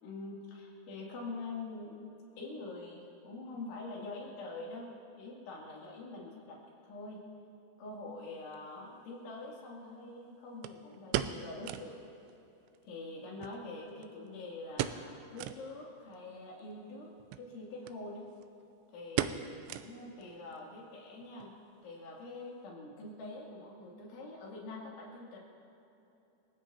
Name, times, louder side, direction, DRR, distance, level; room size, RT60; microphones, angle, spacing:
voice 1, 0.0-2.0 2.4-6.6 6.8-7.2 7.8-12.0 12.8-17.1 17.4-18.2 18.9-21.5 21.8-25.4, left 2 dB, 80° left, -3 dB, 5.2 m, -45 dB
sound 1, 8.5-8.6 10.6-12.0 12.3-12.4 12.7-12.8 13.4-14.3 14.7-15.1 15.4-15.6 16.1-16.2 17.2-17.5 17.9-18.0 18.3-18.6 19.2-20.2 20.5-20.6 21.2-21.5 21.8-21.9, right 11 dB, 85° right, 2.8 m, -37 dB
28.0 x 16.5 x 2.9 m, 3.0 s
omnidirectional pair, 5.4 m